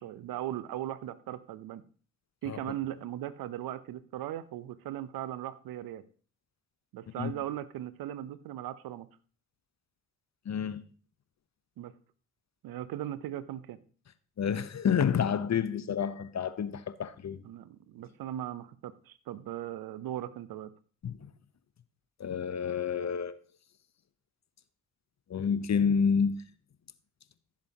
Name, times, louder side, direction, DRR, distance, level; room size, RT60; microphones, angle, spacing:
voice 1, 0.0-1.8 2.4-6.0 6.9-9.1 11.8-11.9 12.6-13.8 17.4-20.7, right 12 dB, 70° right, 0.8 m, -38 dB
voice 2, 10.5-10.8 14.4-17.4 21.0-21.3 22.2-23.4 25.3-26.4, left 7 dB, 45° left, 1.0 m, -29 dB
15.0 x 7.3 x 2.9 m
hypercardioid pair, 40°, 36 cm